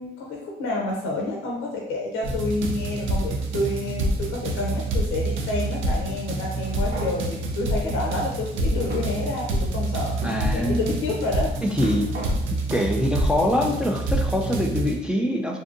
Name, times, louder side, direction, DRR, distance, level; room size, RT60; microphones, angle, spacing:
voice 1, 0.0-10.2 10.5-11.5, left 2 dB, 85° left, -1 dB, 0.5 m, -29 dB
sound 1, 2.2-15.0, right 1 dB, 80° right, 0.5 m, -27 dB
sound 2, 6.3-7.1 8.0-8.1 8.9-9.7 10.2-10.4 11.3-12.3, right 2 dB, 55° right, 0.8 m, -38 dB
voice 2, 10.2-11.0 11.6-12.0 12.7-15.6, left 1 dB, 5° right, 1 dB, 0.3 m, -24 dB
2.6 x 2.4 x 2.5 m, 0.81 s
cardioid pair, 90°, 20 cm